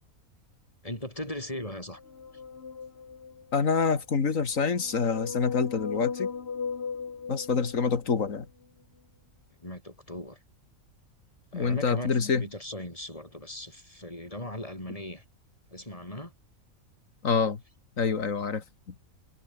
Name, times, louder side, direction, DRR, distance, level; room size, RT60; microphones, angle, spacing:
voice 1, 0.8-2.0 9.6-10.4 11.5-15.2 15.7-16.3, left 1 dB, 25° left, 7.1 m, -38 dB
sound 1, 1.9-3.6 4.4-8.3, left 5 dB, 45° left, 1.6 m, -37 dB
voice 2, 3.5-6.3 7.3-8.5 11.5-12.5 17.2-17.6 18.0-19.0, left 5 dB, 65° left, 2.3 m, -26 dB
omnidirectional pair, 1.5 m